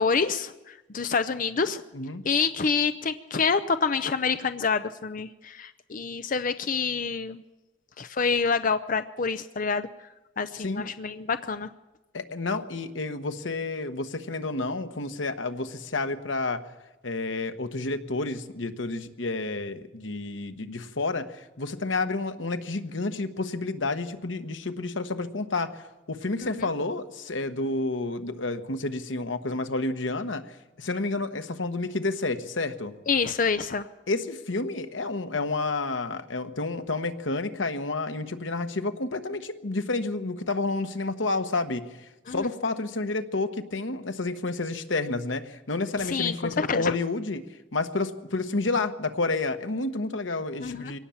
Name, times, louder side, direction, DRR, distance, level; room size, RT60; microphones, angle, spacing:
voice 1, 0.0-1.8 2.2-7.4 8.0-9.9 10.4-11.7 26.4-26.7 33.1-33.9 42.3-42.5 46.0-47.0 50.6-50.9, left 5 dB, 45° left, 11 dB, 0.6 m, -27 dB
voice 2, 10.6-10.9 12.1-16.6 17.0-30.4 30.8-32.9 34.1-47.4 47.7-51.0, left 3 dB, 90° left, 9 dB, 1.3 m, -30 dB
23.5 x 18.0 x 7.2 m, 1.1 s
head